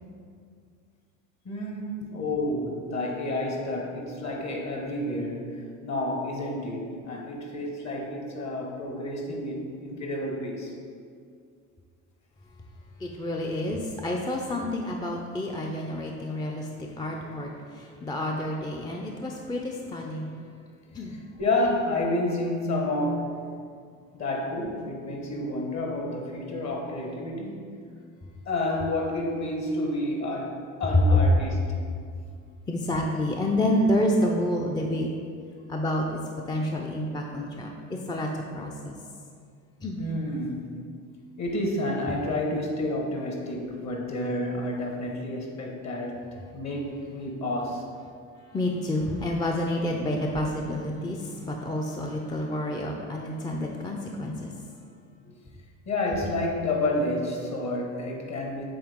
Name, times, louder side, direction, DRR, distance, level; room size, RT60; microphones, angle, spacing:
voice 1, 1.4-10.7 21.4-23.4 24.1-27.7 28.4-31.6 40.0-40.8 41.4-47.9 55.2-55.3 55.8-58.6, left 1 dB, 45° left, 0 dB, 1.4 m, -30 dB
voice 2, 13.0-20.3 20.9-21.2 30.9-31.2 32.7-35.1 35.7-36.2 36.5-38.3 38.5-38.9 39.8-40.0 48.5-54.5, left 1 dB, 10° left, 0 dB, 0.5 m, -28 dB
7.8 x 3.5 x 3.6 m, 2.2 s
hypercardioid pair, 75°, 38 cm